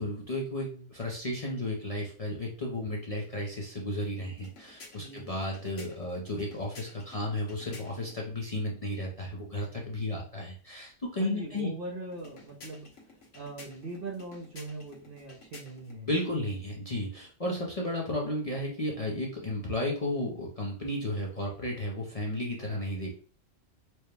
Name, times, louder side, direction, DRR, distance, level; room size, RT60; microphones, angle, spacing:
voice 1, 0.0-11.7 16.1-23.1, left 1 dB, 40° left, -3 dB, 0.6 m, -33 dB
sound 1, 4.3-8.2 12.1-16.0, left 2 dB, 85° left, 1.5 m, -52 dB
voice 2, 5.0-5.3 11.2-12.9 13.3-16.1, right 3 dB, 50° right, 0 dB, 0.9 m, -40 dB
4.4 x 2.2 x 3.3 m, 0.41 s
omnidirectional pair, 1.3 m